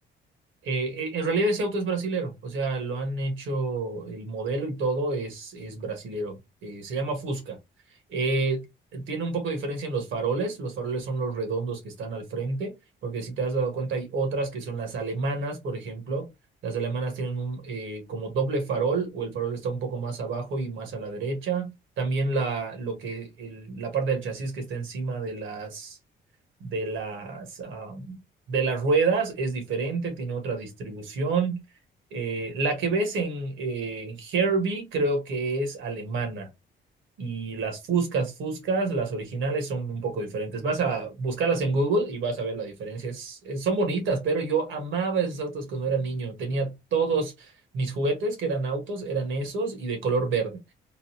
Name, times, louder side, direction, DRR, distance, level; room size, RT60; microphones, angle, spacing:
voice 1, 0.6-6.4 6.6-7.6 8.1-8.6 8.9-12.7 13.0-16.3 16.6-26.0 26.6-28.2 28.5-31.6 32.1-36.5 37.2-50.6, right 3 dB, 80° right, 1.5 m, -28 dB
3.9 x 2.3 x 2.8 m
cardioid pair, 90°, 20 cm